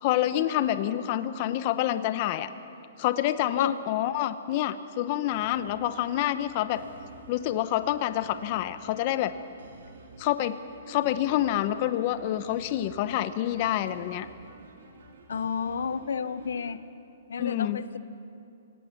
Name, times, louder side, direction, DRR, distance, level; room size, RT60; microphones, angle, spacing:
voice 1, 0.0-2.5 3.0-6.8 7.3-9.3 10.2-10.6 10.9-14.3 17.4-17.8, left 13 dB, 40° left, 12 dB, 0.8 m, -27 dB
sound 1, 5.3-16.7, right 3 dB, 85° right, 3.7 m, -51 dB
voice 2, 15.3-16.8 17.3-18.0, left 6 dB, 80° left, 14 dB, 0.8 m, -31 dB
28.0 x 17.5 x 5.9 m, 2.6 s
hypercardioid pair, 150°, 0 cm